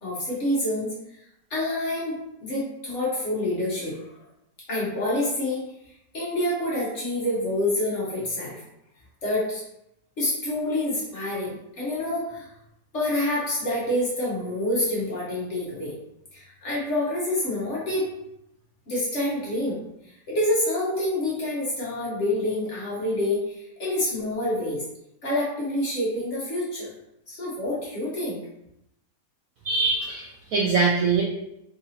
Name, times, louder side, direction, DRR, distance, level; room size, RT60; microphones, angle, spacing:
voice 1, 0.0-0.9 1.5-4.0 4.7-5.6 6.1-8.6 9.2-9.6 10.2-12.5 12.9-15.9 16.3-18.1 18.9-19.8 20.3-24.8 25.2-26.9 27.3-28.4, left 1 dB, 45° left, -6 dB, 1.2 m, -27 dB
voice 2, 29.6-31.2, right 4 dB, 70° right, -3 dB, 0.8 m, -23 dB
3.8 x 2.7 x 2.8 m, 0.81 s
omnidirectional pair, 1.9 m